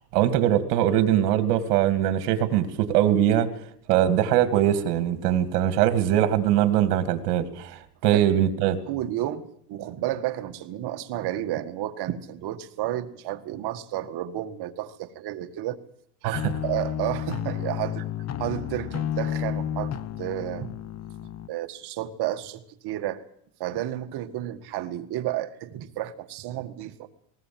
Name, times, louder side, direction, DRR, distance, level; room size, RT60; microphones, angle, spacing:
voice 1, 0.1-3.5 3.9-8.8 16.2-16.4, right 11 dB, 80° right, 11 dB, 2.5 m, -22 dB
voice 2, 8.9-15.8 16.2-18.0 18.4-20.8 21.5-23.2 23.6-27.1, right 13 dB, 55° right, 9 dB, 1.9 m, -31 dB
sound 1, 16.3-21.5, left 10 dB, 35° left, 1.3 m, -31 dB
19.5 x 19.5 x 7.7 m, 0.68 s
supercardioid pair, 115°, 47 cm